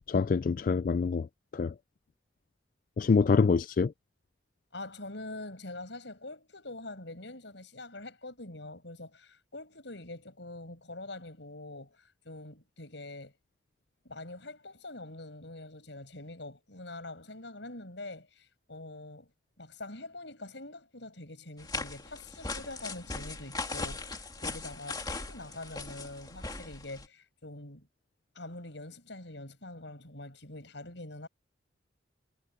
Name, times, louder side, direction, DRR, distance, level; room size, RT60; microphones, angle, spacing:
voice 1, 0.1-1.3 1.5-1.7 3.0-3.9, left 5 dB, 45° left, 0.3 m, -25 dB
voice 2, 4.7-13.3 14.0-19.3 19.6-27.9 28.3-31.3, left 2 dB, 70° left, 5.7 m, -44 dB
sound 1, 21.6-27.1, left 3 dB, 20° left, 2.6 m, -39 dB
head